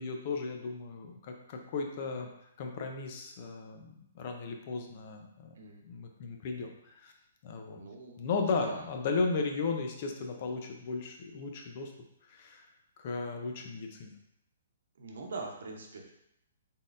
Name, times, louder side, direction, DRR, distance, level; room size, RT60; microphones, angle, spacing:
voice 1, 0.0-2.3 2.6-5.5 5.9-6.7 7.0-7.1 7.4-7.8 8.2-11.9 12.3-12.6 13.0-14.1, left 4 dB, 45° left, 3 dB, 0.6 m, -35 dB
voice 2, 7.7-8.2 8.6-8.8 15.0-16.1, right 3 dB, 75° right, 1 dB, 0.9 m, -42 dB
4.0 x 3.7 x 2.6 m, 0.78 s
hypercardioid pair, 145°, 0 cm